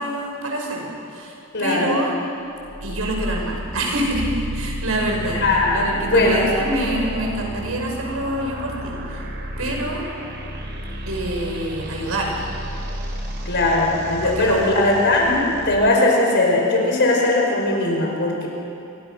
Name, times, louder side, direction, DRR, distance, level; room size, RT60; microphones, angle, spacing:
voice 1, 0.0-1.3 1.6-2.1 2.8-5.4 5.7-8.9 9.6-10.0 11.1-12.3 14.2-14.7 15.2-15.5, right 1 dB, 75° right, 0 dB, 6.1 m, -26 dB
voice 2, 1.5-1.9 5.4-6.5 13.5-15.3 15.7-18.5, left 2 dB, 55° left, -1 dB, 5.2 m, -19 dB
sound 1, 2.6-15.9, equal, 55° right, 4.2 m, -32 dB
29.5 x 23.5 x 6.3 m, 2.6 s
head